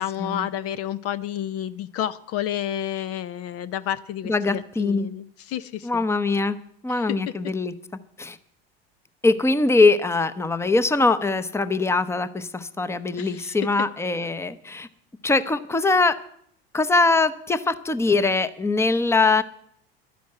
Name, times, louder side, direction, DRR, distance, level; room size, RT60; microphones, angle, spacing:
voice 1, 0.0-6.0 6.9-7.3 13.2-13.6, left 11 dB, 50° left, 16 dB, 0.6 m, -30 dB
voice 2, 4.3-5.1 5.8-6.6 6.8-7.7 8.2-8.4 9.2-14.9 15.2-16.2 16.7-19.4, left 3 dB, 10° left, 12 dB, 0.8 m, -22 dB
11.5 x 10.5 x 7.8 m, 0.67 s
hypercardioid pair, 90°, 29 cm